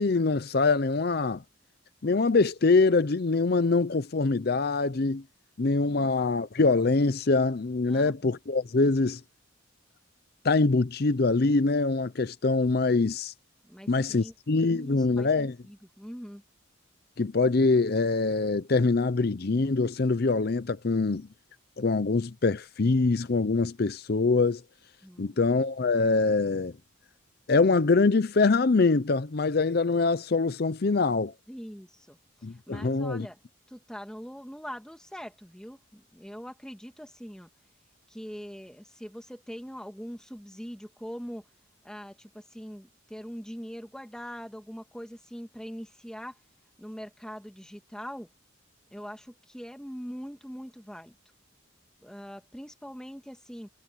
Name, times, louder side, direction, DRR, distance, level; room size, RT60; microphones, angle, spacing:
voice 1, 0.0-1.4 2.0-5.2 5.6-9.2 10.4-13.3 13.9-15.6 17.2-21.3 21.8-24.6 25.2-26.7 27.5-31.3 32.4-33.3, left 3 dB, 50° left, 0.6 m, -24 dB
voice 2, 13.6-14.3 14.7-16.4 25.0-25.5 31.5-32.2 32.7-33.4 33.7-37.5 38.1-41.4 41.8-46.4 46.8-48.3 48.9-51.2 52.0-53.7, equal, 5° left, 2.2 m, -42 dB
head